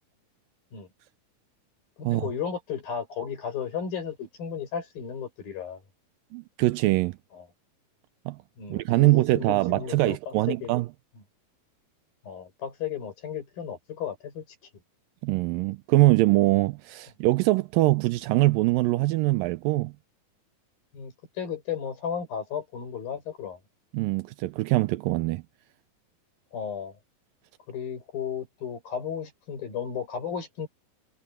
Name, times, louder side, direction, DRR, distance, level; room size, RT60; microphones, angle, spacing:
voice 1, 2.0-5.8 7.3-7.5 8.6-10.7 12.2-14.4 20.9-23.6 26.5-27.0 27.7-30.7, left 7 dB, 75° left, 7.9 m, -34 dB
voice 2, 6.3-7.2 8.3-8.4 8.7-10.9 15.2-19.9 23.9-25.4, right 19 dB, 85° right, 2.2 m, -23 dB
omnidirectional pair, 4.1 m